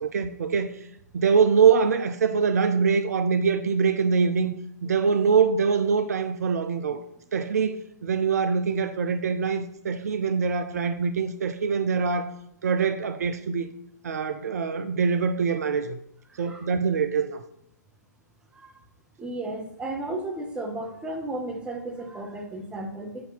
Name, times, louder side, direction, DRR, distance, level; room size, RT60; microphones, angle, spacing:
voice 1, 0.0-0.7 1.1-4.5 4.8-7.0 7.3-12.3 12.6-13.7 14.0-16.0 16.4-17.4, right 5 dB, 60° right, 0.4 m, -24 dB
voice 2, 16.3-16.7 18.5-18.8 19.2-23.3, right 2 dB, 10° right, 0.8 m, -34 dB
7.7 x 2.7 x 5.8 m
figure-of-eight pair, 115°, 10 cm